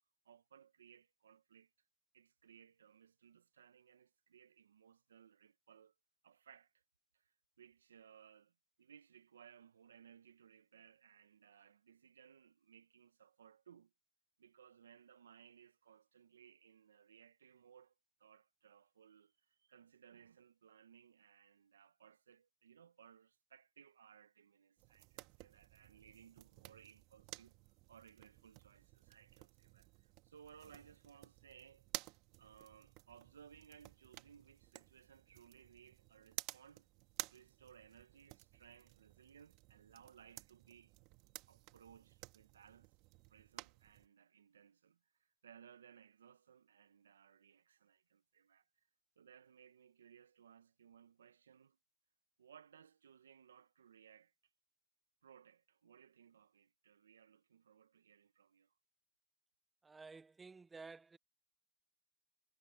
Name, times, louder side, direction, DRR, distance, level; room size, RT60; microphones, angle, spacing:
voice 1, 0.2-1.7 2.1-5.9 6.2-6.8 7.1-13.9 14.4-17.9 18.2-27.6 27.9-36.9 37.3-40.9 41.5-42.9 43.3-48.7 49.2-51.8 52.4-54.3 55.2-58.7, right 8 dB, 85° right, 1.2 m, -63 dB
sound 1, 24.8-44.1, right 22 dB, 50° right, 2.0 m, -54 dB
voice 2, 59.8-61.2, right 4 dB, 15° right, 0.7 m, -54 dB
hypercardioid pair, 105°, 0 cm